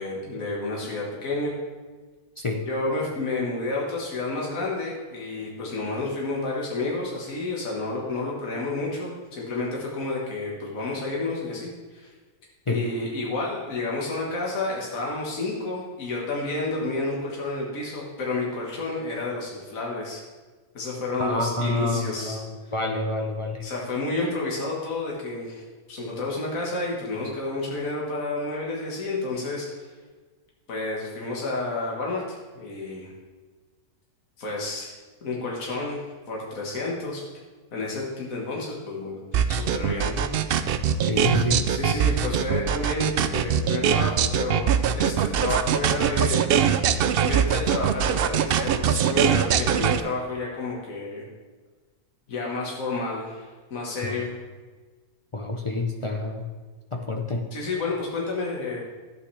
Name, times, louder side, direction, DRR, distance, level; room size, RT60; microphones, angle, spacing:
voice 1, 0.0-1.5 2.7-12.1 12.7-20.2 20.7-22.4 23.6-25.6 25.9-29.7 30.7-33.1 34.4-34.9 35.2-37.2 37.7-40.3 41.7-44.7 45.0-46.4 47.2-51.2 52.3-54.3 57.5-58.8, left 2 dB, 65° left, -3 dB, 2.0 m, -30 dB
voice 2, 21.2-23.6 41.1-41.7 54.0-54.2 55.3-56.5 56.9-57.5, left 2 dB, 50° left, 2 dB, 0.3 m, -28 dB
sound 1, 39.3-50.0, right 8 dB, 90° right, 0.5 m, -22 dB
11.5 x 8.9 x 3.3 m, 1.4 s
omnidirectional pair, 1.5 m